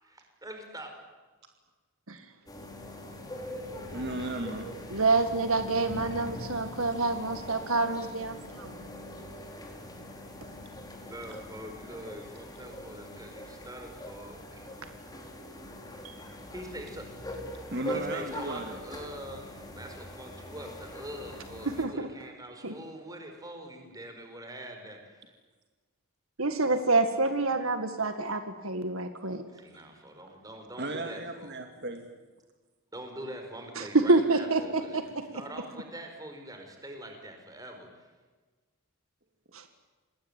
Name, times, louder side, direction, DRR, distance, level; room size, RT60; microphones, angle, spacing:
voice 1, 0.0-0.9 11.1-14.7 16.0-17.1 17.9-25.2 29.5-31.6 32.9-38.1, right 1 dB, 15° right, 4 dB, 5.1 m, -44 dB
sound 1, 2.5-21.9, left 1 dB, 20° left, 4.2 m, -42 dB
voice 2, 3.9-4.7 17.7-18.8 30.8-32.0, right 1 dB, 50° right, 5 dB, 2.4 m, -35 dB
voice 3, 4.9-8.8 21.7-22.1 22.6-22.7 26.4-29.4 33.8-35.2 39.5-39.7, right 3 dB, 75° right, 8 dB, 1.9 m, -27 dB
27.5 x 21.0 x 9.0 m, 1.3 s
head